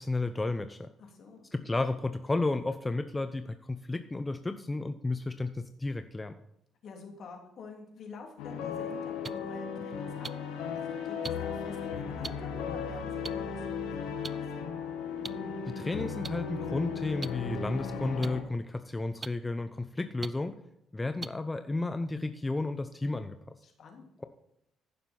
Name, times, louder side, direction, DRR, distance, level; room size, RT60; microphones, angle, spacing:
voice 1, 0.0-0.9 1.5-6.3 15.7-20.6 20.9-23.4, left 2 dB, 20° left, 9 dB, 0.8 m, -32 dB
voice 2, 1.0-1.5 6.8-10.3 10.7-14.4 23.6-24.1, left 4 dB, 65° left, 2 dB, 3.2 m, -48 dB
sound 1, 8.4-18.4, left 6 dB, 85° left, 1.8 m, -36 dB
sound 2, 9.2-9.3 10.2-10.3 11.2-11.3 12.2-12.3 13.2-13.3 14.2-14.3 15.2-15.3 16.2-16.3 17.2-17.3 18.2-18.3 19.2-19.3 20.2-20.3 21.2-21.3 22.2-22.3, right 4 dB, 35° right, 0.5 m, -37 dB
15.0 x 6.7 x 4.4 m, 0.80 s
supercardioid pair, 60°, 0 cm